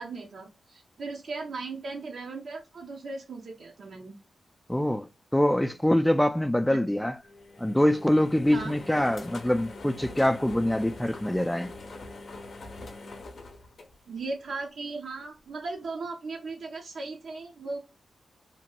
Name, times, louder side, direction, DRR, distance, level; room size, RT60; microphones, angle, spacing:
voice 1, 0.0-4.1 6.7-6.8 8.5-8.8 14.1-17.8, right 3 dB, 70° right, 0.6 m, -37 dB
voice 2, 4.7-7.2 7.6-11.7, left 1 dB, 5° left, 0.3 m, -24 dB
sound 1, 7.2-14.5, left 2 dB, 60° left, 0.5 m, -43 dB
2.9 x 2.2 x 2.9 m
cardioid pair, 75°, 0 cm